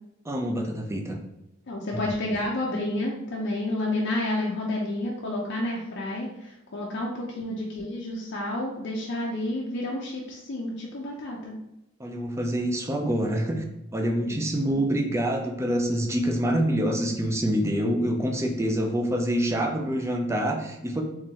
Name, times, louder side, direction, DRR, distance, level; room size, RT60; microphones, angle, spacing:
voice 1, 0.3-1.2 1.9-2.2 12.0-13.6 13.9-21.0, equal, 15° right, 3 dB, 0.4 m, -26 dB
voice 2, 1.7-11.6 14.2-14.8, left 1 dB, 60° left, -3 dB, 0.5 m, -30 dB
3.8 x 3.0 x 2.8 m, 0.90 s
head